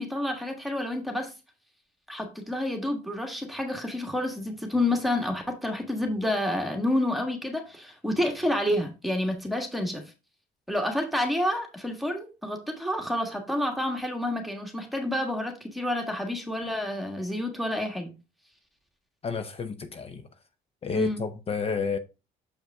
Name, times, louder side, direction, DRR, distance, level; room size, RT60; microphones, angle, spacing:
voice 1, 0.0-1.3 2.1-10.0 10.7-18.1 20.9-21.2, left 1 dB, ahead, 1.6 m, -29 dB
voice 2, 19.2-20.3 20.8-22.0, left 5 dB, 35° left, 0.7 m, -30 dB
6.7 x 5.3 x 3.6 m
cardioid pair, 110°, 17 cm